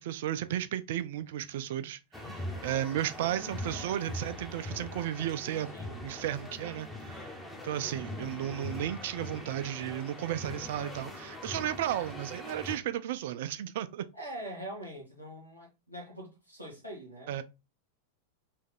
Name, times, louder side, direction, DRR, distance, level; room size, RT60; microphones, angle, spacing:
voice 1, 0.0-5.7 6.0-7.3 7.6-14.1 17.3-17.4, right 11 dB, 55° right, 0.4 m, -34 dB
sound 1, 2.1-12.8, left 1 dB, 5° left, 1.0 m, -42 dB
voice 2, 2.2-2.7 5.7-6.5 14.1-17.3, right 1 dB, 90° left, 1.7 m, -44 dB
3.5 x 3.3 x 3.6 m
figure-of-eight pair, 90°, 0 cm